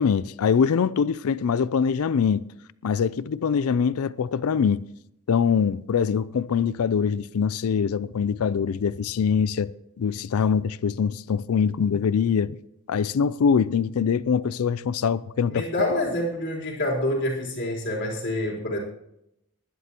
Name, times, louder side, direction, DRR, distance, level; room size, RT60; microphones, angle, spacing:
voice 1, 0.0-2.5 2.8-4.8 5.3-9.7 10.0-12.6 12.9-15.7, left 6 dB, 75° left, 0.4 m, -23 dB
voice 2, 15.5-18.8, left 1 dB, 55° left, 3.7 m, -27 dB
19.5 x 11.5 x 2.9 m
head